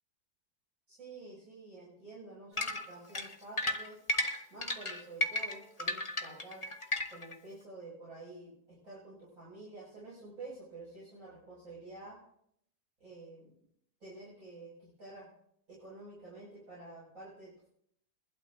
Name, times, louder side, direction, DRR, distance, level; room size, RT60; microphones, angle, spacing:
voice 1, 0.9-4.0 4.5-6.6 7.1-12.2 13.0-13.5 14.0-15.3 15.7-17.7, right 2 dB, 60° right, -9 dB, 6.5 m, -49 dB
sound 1, 2.6-7.3, left 1 dB, 25° left, 1.0 m, -34 dB
22.5 x 12.0 x 2.6 m, 0.71 s
omnidirectional pair, 1.6 m